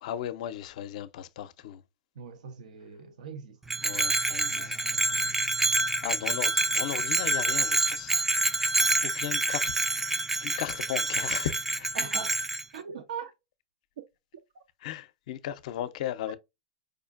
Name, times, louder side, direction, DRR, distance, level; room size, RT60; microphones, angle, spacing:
voice 1, 0.0-1.8 3.8-4.7 6.0-8.1 8.5-8.7 9.0-11.9 14.8-16.4, left 11 dB, 65° left, 0.5 m, -36 dB
voice 2, 2.2-3.6 4.4-5.7 11.9-12.4 12.7-13.3 14.5-14.6, right 6 dB, 80° right, 0.6 m, -41 dB
Bell, 3.7-12.6, right 2 dB, 5° right, 0.4 m, -27 dB
4.9 x 2.4 x 2.4 m
hypercardioid pair, 115°, 4 cm